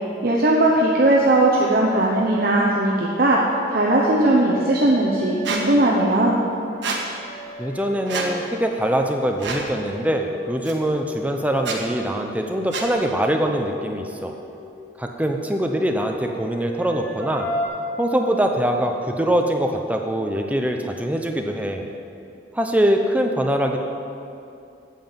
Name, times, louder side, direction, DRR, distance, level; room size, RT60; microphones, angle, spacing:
voice 1, 0.2-3.4 3.7-6.4, right 1 dB, 50° right, -3 dB, 0.9 m, -18 dB
sound 1, 1.9-9.1 9.5-14.7 15.6-17.7, equal, 10° left, 2.0 m, -37 dB
Squeak, 5.4-5.6 6.8-7.0 8.1-8.3 9.4-9.7 10.6-10.7 11.6-11.8 12.7-12.9, right 4 dB, 70° right, 1.4 m, -27 dB
voice 2, 7.6-14.3 15.0-17.5 18.0-21.9 22.5-23.8, right 1 dB, 5° right, 3 dB, 0.6 m, -23 dB
9.1 x 7.8 x 7.3 m, 2.6 s
head